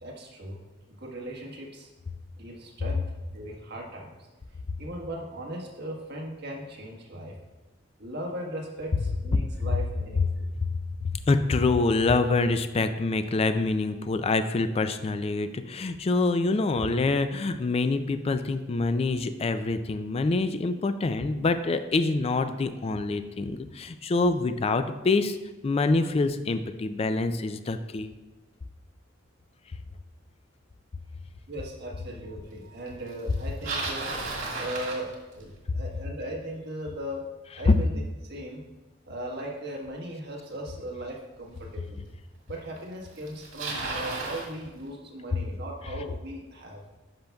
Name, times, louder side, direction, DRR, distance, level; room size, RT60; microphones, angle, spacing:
voice 1, 0.0-0.6 0.9-1.9 2.4-3.0 3.3-4.1 4.8-7.3 8.0-10.5 31.5-34.1 34.5-37.2 37.5-37.9 38.2-38.6 39.1-42.1 42.5-46.8, right 1 dB, 55° right, -1 dB, 1.4 m, -38 dB
voice 2, 11.0-25.4 25.6-28.1 37.7-37.8, left 3 dB, 30° left, 10 dB, 0.3 m, -25 dB
Bicycle, 33.3-35.6 40.7-40.8 41.6-41.7 42.8-42.9 43.1-44.5, right 3 dB, 80° right, 1.9 m, -33 dB
10.5 x 5.8 x 2.3 m, 1.1 s
head